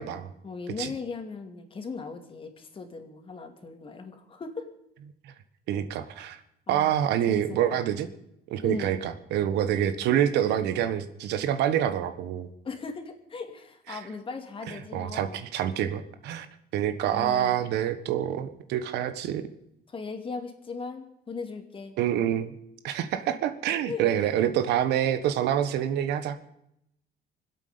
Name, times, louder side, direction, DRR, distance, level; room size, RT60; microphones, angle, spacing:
voice 1, 0.4-4.7 6.7-7.0 7.3-7.8 8.6-8.9 12.6-15.4 17.1-17.6 19.9-21.9 23.9-24.0, left 4 dB, 30° left, 5 dB, 2.5 m, -38 dB
voice 2, 5.7-6.4 6.7-8.1 8.5-12.5 13.9-14.0 14.9-16.5 16.7-19.5 22.0-22.6 22.8-26.4, right 10 dB, 80° right, 10 dB, 1.4 m, -26 dB
24.0 x 8.4 x 6.9 m, 0.79 s
cardioid pair, 110°, 17 cm